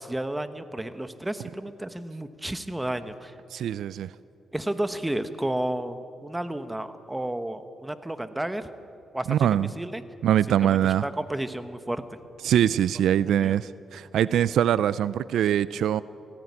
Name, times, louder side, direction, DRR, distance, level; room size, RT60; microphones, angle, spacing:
voice 1, 0.0-3.3 4.5-8.7 9.1-10.0 10.6-12.2 13.4-13.5, right 1 dB, 10° right, 10 dB, 1.3 m, -32 dB
voice 2, 3.5-4.1 9.3-9.7 10.2-11.0 12.4-16.0, right 10 dB, 80° right, 17 dB, 0.4 m, -23 dB
18.0 x 16.0 x 9.8 m, 2.6 s
cardioid pair, 70°, 0 cm